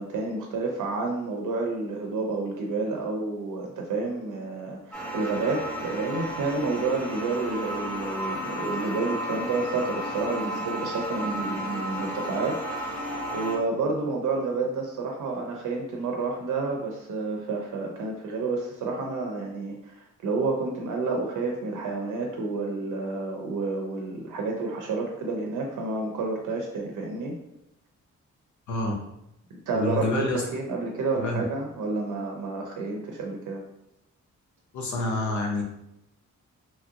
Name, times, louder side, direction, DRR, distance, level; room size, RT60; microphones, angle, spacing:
voice 1, 0.0-13.0 13.3-27.3 29.5-30.0 30.3-33.6, right 3 dB, 85° right, 1 dB, 0.6 m, -30 dB
sound 1, 4.9-13.6, equal, 5° left, 0.6 m, -33 dB
voice 2, 29.7-30.4 31.2-31.4 34.7-35.6, left 2 dB, 70° left, 0 dB, 0.8 m, -27 dB
3.1 x 2.4 x 2.7 m, 0.83 s
wide cardioid pair, 160°, 30 cm